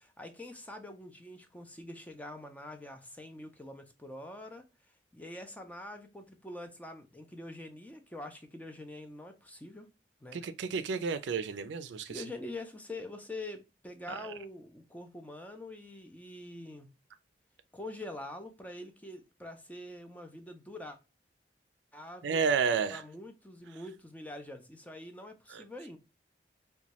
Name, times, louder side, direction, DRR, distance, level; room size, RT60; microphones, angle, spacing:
voice 1, 0.2-4.7 5.1-9.9 10.2-10.4 12.1-16.9 17.7-21.0 21.9-22.4 22.9-26.0, left 1 dB, 10° left, 0.4 m, -45 dB
voice 2, 10.3-12.2 14.1-14.3 22.2-23.0 25.5-25.6, right 5 dB, 75° right, 0.4 m, -31 dB
3.0 x 2.2 x 2.8 m
head